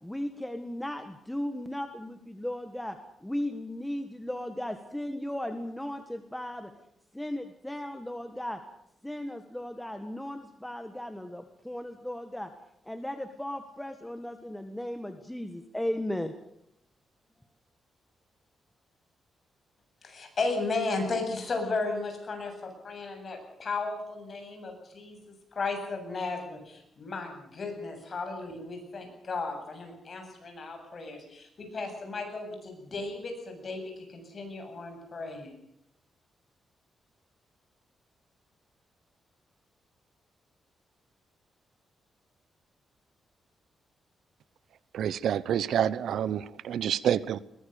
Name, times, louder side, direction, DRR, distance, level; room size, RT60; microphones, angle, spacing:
voice 1, 0.0-6.7 7.1-8.6 9.0-12.5 12.8-16.3, left 1 dB, 5° left, 7 dB, 1.7 m, -36 dB
voice 2, 20.0-35.6, left 3 dB, 40° left, 4 dB, 7.8 m, -35 dB
voice 3, 44.9-47.4, right 9 dB, 80° right, 18 dB, 0.9 m, -28 dB
22.0 x 19.5 x 6.8 m, 0.77 s
cardioid pair, 120°, 0 cm